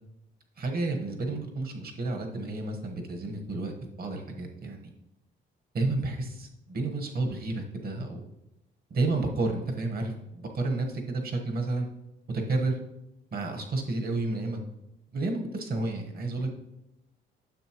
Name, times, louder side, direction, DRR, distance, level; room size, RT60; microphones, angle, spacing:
voice 1, 0.6-4.9 5.7-8.2 8.9-11.9 12.3-12.8 13.3-14.6 15.1-16.5, right 2 dB, 50° right, 3 dB, 1.3 m, -31 dB
9.3 x 6.8 x 3.0 m, 0.92 s
cardioid pair, 90°, 20 cm